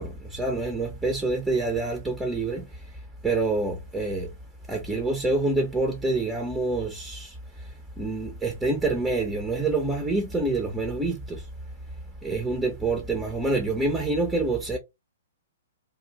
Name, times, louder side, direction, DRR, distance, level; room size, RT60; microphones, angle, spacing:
voice 1, 0.0-4.4 4.7-11.5 12.2-14.8, right 2 dB, 5° right, 0.5 m, -27 dB
2.6 x 2.2 x 2.9 m
figure-of-eight pair, 115°, 0 cm